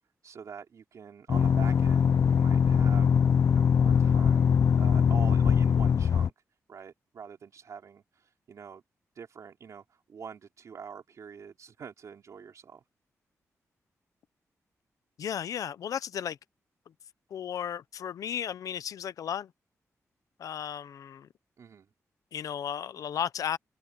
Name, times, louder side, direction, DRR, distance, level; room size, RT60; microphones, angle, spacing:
voice 1, 0.2-3.1 3.5-6.3 6.7-8.8 9.2-12.8 21.6-21.9, right 6 dB, 70° right, 3.8 m, -45 dB
sound 1, 1.3-6.3, left 7 dB, 60° left, 0.4 m, -22 dB
voice 2, 15.2-16.4 17.3-19.5 20.4-21.3 22.3-23.6, left 9 dB, 85° left, 0.7 m, -34 dB
wide cardioid pair, 100°, 6 cm